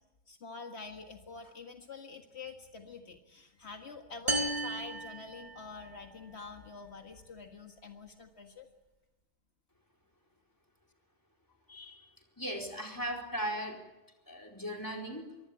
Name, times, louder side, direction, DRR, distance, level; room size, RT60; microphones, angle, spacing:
voice 1, 0.3-8.7, left 4 dB, 70° left, 4 dB, 2.0 m, -46 dB
sound 1, 4.3-6.0, right 2 dB, 40° right, 2.5 m, -35 dB
voice 2, 11.7-12.1 12.4-13.8 14.3-15.3, equal, 15° left, 2 dB, 4.6 m, -38 dB
25.0 x 23.5 x 8.6 m, 1.0 s
omnidirectional pair, 1.1 m